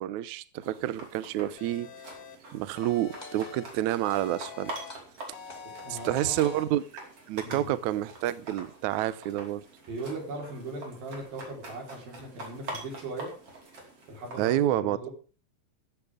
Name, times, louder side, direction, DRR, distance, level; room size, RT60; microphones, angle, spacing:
voice 1, 0.0-1.9 2.5-4.7 5.9-6.8 7.3-9.6 14.4-15.1, right 13 dB, 85° right, 1.7 m, -29 dB
sound 1, 0.6-14.5, right 2 dB, 35° right, 5.4 m, -45 dB
sound 2, 1.6-2.4 2.8-3.6 4.0-4.9 5.3-6.6, left 6 dB, 80° left, 3.4 m, -45 dB
sound 3, 3.2-3.7 4.1-4.6 4.9-5.9 6.4-6.9 7.4-7.9, left 2 dB, 15° left, 1.8 m, -51 dB
voice 2, 5.8-6.4 7.4-7.7 9.9-13.3 14.1-15.1, right 2 dB, 65° right, 6.1 m, -39 dB
15.0 x 14.5 x 3.7 m
omnidirectional pair, 4.5 m